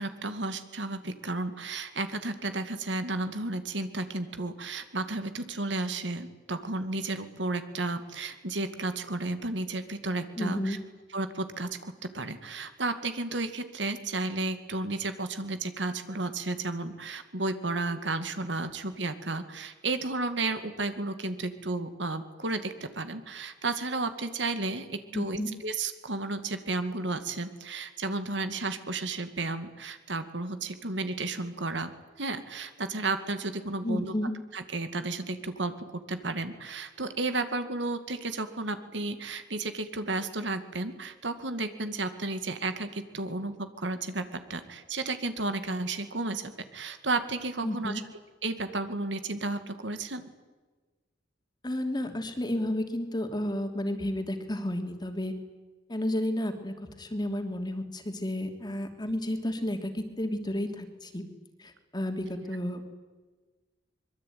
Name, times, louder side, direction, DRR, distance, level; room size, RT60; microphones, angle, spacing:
voice 1, 0.0-10.8 11.1-31.9 32.2-34.1 34.5-48.0 48.4-50.2, right 2 dB, 75° right, 9 dB, 2.3 m, -33 dB
voice 2, 10.4-10.8 25.1-25.5 33.8-34.3 47.6-48.0 51.6-55.3 55.9-61.2 61.6-62.9, left 1 dB, 25° left, 6 dB, 3.0 m, -32 dB
25.0 x 23.0 x 9.5 m, 1.3 s
head